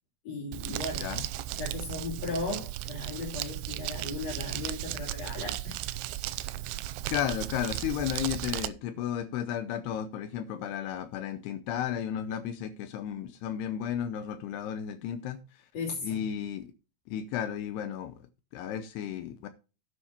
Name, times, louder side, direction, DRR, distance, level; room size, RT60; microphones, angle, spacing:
voice 1, 0.2-1.1 1.5-5.7 6.1-6.2 15.7-16.2, left 3 dB, 40° left, 3.5 m, -36 dB
Crumpling crinkling, 0.5-8.7, right 15 dB, 90° right, 3.2 m, -35 dB
voice 2, 7.1-15.7 16.0-16.7 17.1-18.3 18.5-19.5, left 9 dB, 80° left, 2.4 m, -33 dB
9.8 x 6.1 x 5.8 m
omnidirectional pair, 5.6 m